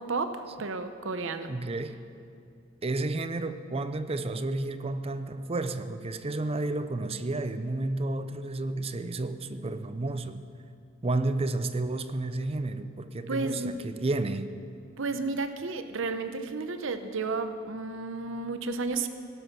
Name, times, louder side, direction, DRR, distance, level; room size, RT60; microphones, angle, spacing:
voice 1, 0.0-1.5 13.3-13.8 15.0-19.1, right 3 dB, 70° right, 9 dB, 0.8 m, -32 dB
voice 2, 1.5-2.0 2.8-10.4 11.0-14.5, right 2 dB, 30° right, 11 dB, 0.6 m, -31 dB
18.0 x 11.0 x 5.9 m, 2.4 s
head